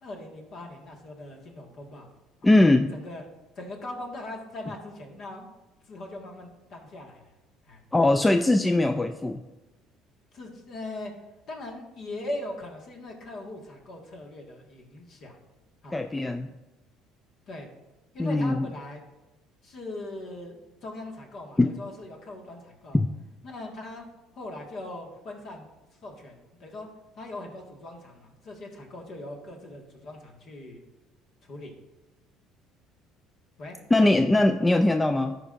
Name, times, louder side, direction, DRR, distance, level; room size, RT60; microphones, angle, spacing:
voice 1, 0.0-2.1 2.4-2.5 2.9-3.2 3.5-5.5 5.8-7.3 7.7-7.8 10.3-11.1 11.5-15.4 15.8-16.0 17.5-17.7 18.1-19.0 19.6-23.0 23.4-24.1 24.3-25.7 26.0-26.9 27.2-30.8 31.4-31.7 33.6-33.8, left 2 dB, 50° left, 1 dB, 1.6 m, -40 dB
voice 2, 2.4-2.9 7.9-9.4 15.9-16.5 18.2-18.7 21.6-21.7 22.9-23.1 33.9-35.4, left 2 dB, 10° left, 7 dB, 0.3 m, -21 dB
13.5 x 5.1 x 2.5 m, 1.0 s
cardioid pair, 115°, 0 cm